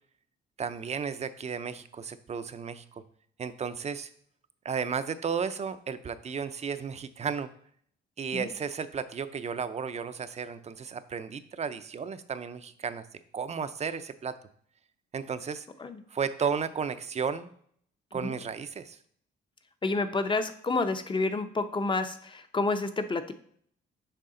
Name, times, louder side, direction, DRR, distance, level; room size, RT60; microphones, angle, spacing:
voice 1, 0.6-3.0 3.4-4.1 4.6-7.5 8.2-13.0 13.3-14.4 15.1-15.7 16.1-17.5 18.1-19.0, right 6 dB, 35° right, 12 dB, 0.5 m, -33 dB
voice 2, 19.8-23.3, left 3 dB, 25° left, 9 dB, 0.6 m, -29 dB
6.7 x 4.9 x 3.8 m, 0.62 s
cardioid pair, 90°, 20 cm